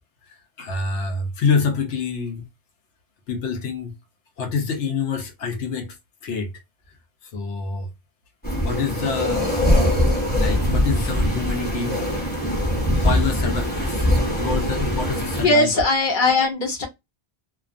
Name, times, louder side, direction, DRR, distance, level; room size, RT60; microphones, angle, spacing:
voice 1, 0.6-2.5 3.3-3.9 4.4-6.0 6.2-6.5 7.2-7.9 8.6-9.5 10.4-12.0 13.0-14.1 14.4-15.7, left 5 dB, 85° left, 1.0 m, -26 dB
sound 1, 8.4-15.5, left 1 dB, 10° left, 0.9 m, -22 dB
voice 2, 15.4-16.9, left 2 dB, 50° left, 0.8 m, -19 dB
2.4 x 2.3 x 2.4 m
omnidirectional pair, 1.2 m